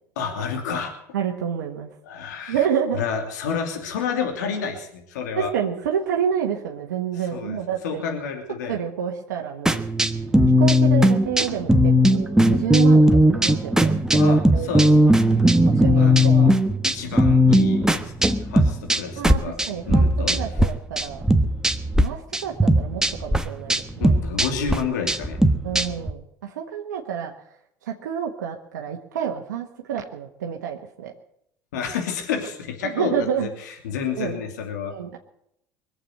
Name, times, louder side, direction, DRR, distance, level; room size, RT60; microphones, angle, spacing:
voice 1, 0.2-0.9 2.1-2.7 2.9-5.5 7.1-7.6 7.8-8.8 14.2-14.9 16.0-16.5 16.8-19.6 19.9-20.4 24.0-25.4 31.7-34.9, left 6 dB, 85° left, 4 dB, 2.8 m, -30 dB
voice 2, 1.1-1.9 2.5-3.0 5.4-8.0 8.7-9.8 10.6-14.0 14.3-14.9 15.7-16.5 19.2-19.4 19.7-20.0 20.3-21.2 22.0-24.2 25.6-27.3 27.8-31.1 32.8-33.5 34.2-34.4 34.9-35.2, right 8 dB, 85° right, 1 dB, 1.4 m, -28 dB
sound 1, 9.7-20.7 21.0-22.0 22.3-26.1, equal, 5° right, 1.3 m, -18 dB
21.5 x 8.0 x 7.9 m, 0.75 s
hypercardioid pair, 80°, 9 cm